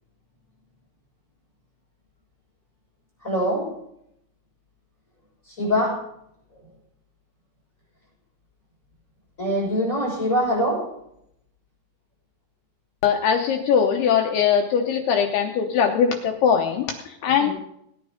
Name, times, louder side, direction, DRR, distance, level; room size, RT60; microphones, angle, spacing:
voice 1, 3.2-3.7 5.5-6.0 9.4-10.8 17.4-17.5, equal, 15° left, -5 dB, 6.5 m, -23 dB
voice 2, 13.0-17.5, left 7 dB, 80° left, 3 dB, 2.3 m, -21 dB
18.0 x 9.6 x 5.1 m, 0.77 s
omnidirectional pair, 5.8 m